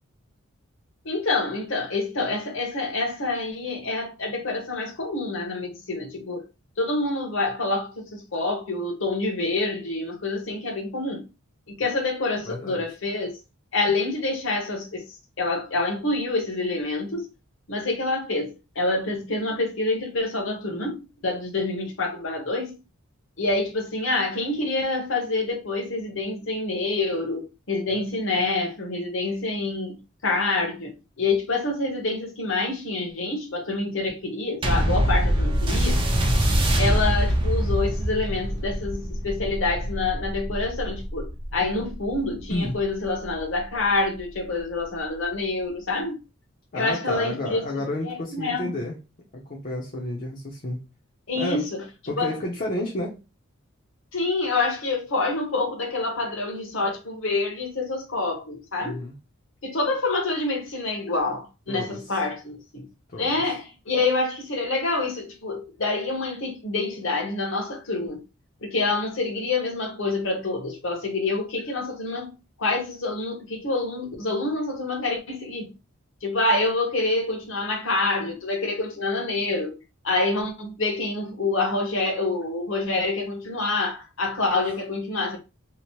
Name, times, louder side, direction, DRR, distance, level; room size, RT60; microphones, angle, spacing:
voice 1, 1.0-6.5 6.8-11.2 11.7-13.4 13.7-15.0 15.4-17.3 17.7-22.7 23.4-30.9 31.2-36.0 36.8-46.2 46.7-47.6 48.0-48.7 51.3-51.8 52.2-52.4 54.1-59.0 59.6-62.9 63.2-68.2 68.6-72.3 72.6-75.7 76.2-79.8 80.0-85.4, left 3 dB, 60° left, 0.9 m, -27 dB
voice 2, 12.4-12.8 42.5-42.8 46.7-49.0 49.3-50.8 51.3-51.6 52.1-53.2 58.8-59.1 61.7-62.2 63.1-63.3, left 1 dB, 40° left, 0.5 m, -31 dB
sound 1, 34.6-43.4 44.2-44.3, equal, 25° right, 0.4 m, -24 dB
2.8 x 2.0 x 2.9 m
head